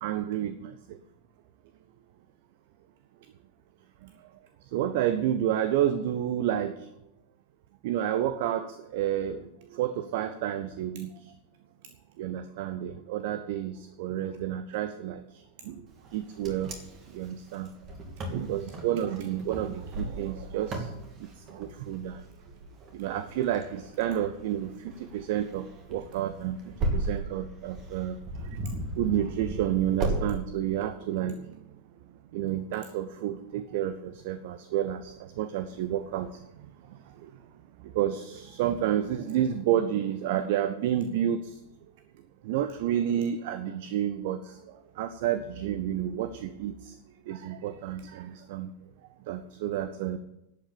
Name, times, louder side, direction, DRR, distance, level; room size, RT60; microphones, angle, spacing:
voice 1, 0.0-0.7 4.7-6.8 7.8-9.4 9.7-11.1 12.2-15.2 15.7-15.8 16.1-16.7 17.1-17.7 18.3-20.9 21.5-22.2 22.9-24.7 25.0-26.6 26.9-28.2 29.0-31.4 32.3-36.3 37.9-41.4 42.4-44.5 45.0-46.9 47.3-48.7 49.3-50.2, right 11 dB, 50° right, 11 dB, 0.8 m, -30 dB
Wind, 16.0-30.2, right 2 dB, 30° right, 2.8 m, -36 dB
11.5 x 8.4 x 8.9 m, 0.86 s
figure-of-eight pair, 90°, 0 cm